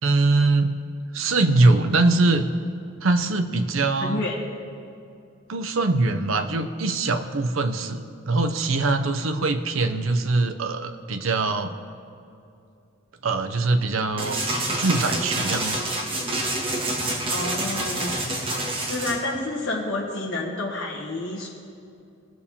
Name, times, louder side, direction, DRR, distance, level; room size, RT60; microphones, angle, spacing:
voice 1, 0.0-0.8 1.1-2.5 3.0-4.3 5.5-11.7 13.2-14.4 14.8-15.8, right 2 dB, 70° right, 7 dB, 0.7 m, -22 dB
voice 2, 4.0-4.4 17.3-18.2 18.8-21.5, left 2 dB, 60° left, -4 dB, 1.4 m, -29 dB
sound 1, 14.2-19.2, right 1 dB, 25° right, 1.7 m, -27 dB
20.5 x 6.9 x 2.8 m, 2.6 s
head